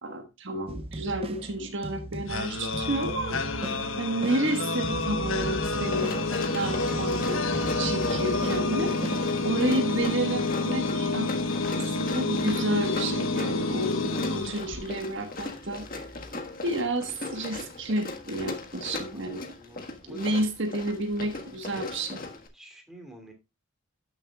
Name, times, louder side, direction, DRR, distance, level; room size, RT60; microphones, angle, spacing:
voice 1, 0.0-3.4 4.0-6.1 6.5-7.4 7.8-9.0 9.4-11.3 11.8-15.9 16.6-19.4 20.1-22.2, right 1 dB, 55° right, 1.3 m, -30 dB
sound 1, 0.7-9.8, right 1 dB, 25° right, 0.6 m, -39 dB
sound 2, 2.3-15.2, left 2 dB, 60° left, 1.2 m, -29 dB
Run, 5.8-22.5, left 3 dB, 40° left, 1.5 m, -38 dB
voice 2, 19.1-20.2 22.5-23.3, equal, ahead, 2.5 m, -49 dB
12.5 x 6.9 x 2.3 m
head